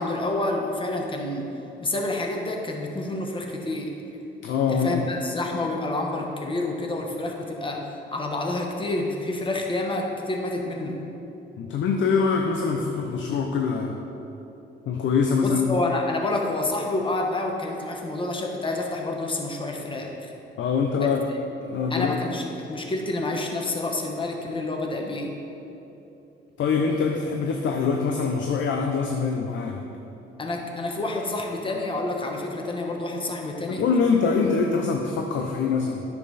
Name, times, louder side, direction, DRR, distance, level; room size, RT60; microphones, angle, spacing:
voice 1, 0.0-1.5 1.8-3.9 4.7-11.0 15.4-20.3 21.0-21.1 21.9-25.4 30.4-33.9, left 2 dB, 25° left, 1 dB, 1.2 m, -28 dB
voice 2, 4.4-5.0 11.6-14.0 14.9-15.8 20.6-21.3 21.6-22.2 26.6-29.9 33.7-36.0, left 5 dB, 70° left, 3 dB, 0.7 m, -24 dB
9.9 x 7.1 x 4.1 m, 3.0 s
cardioid pair, 90°, 20 cm